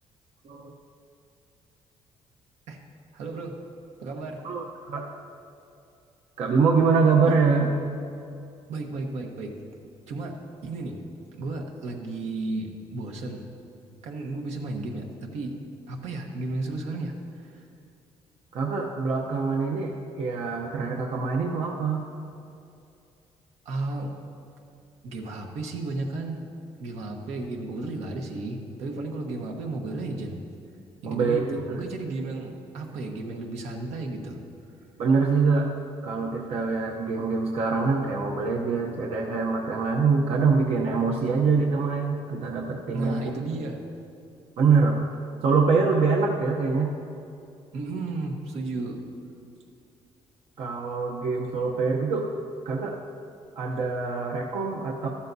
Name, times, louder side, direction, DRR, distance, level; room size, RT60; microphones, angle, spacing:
voice 1, 3.1-3.6 4.0-4.4 8.7-9.6 10.1-11.0 11.3-13.5 14.0-15.6 15.9-17.7 23.6-24.1 25.0-26.5 26.8-30.4 31.0-34.4 42.9-43.8 47.7-49.0, right 2 dB, 85° right, 2 dB, 1.2 m, -33 dB
voice 2, 4.4-5.1 6.4-7.7 18.5-22.0 31.1-31.8 35.0-35.7 36.0-43.3 44.6-45.0 45.4-46.9 50.6-52.3 52.6-53.0 53.6-55.1, right 4 dB, 65° right, 0 dB, 0.8 m, -24 dB
13.0 x 12.5 x 2.7 m, 2.6 s
cardioid pair, 135°, 11 cm